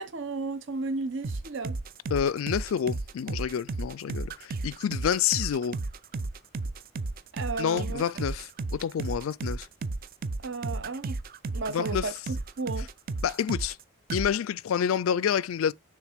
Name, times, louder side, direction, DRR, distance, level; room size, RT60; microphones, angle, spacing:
voice 1, 0.0-1.8 7.3-8.0 10.4-11.2 11.5-12.9, right 3 dB, 60° right, 0.9 m, -34 dB
sound 1, 1.2-13.8 14.1-14.3, right 3 dB, 45° right, 0.5 m, -33 dB
voice 2, 2.1-5.8 7.6-9.7 11.7-12.1 13.2-13.8 14.1-15.7, left 8 dB, 75° left, 0.4 m, -28 dB
6.4 x 3.4 x 5.0 m
head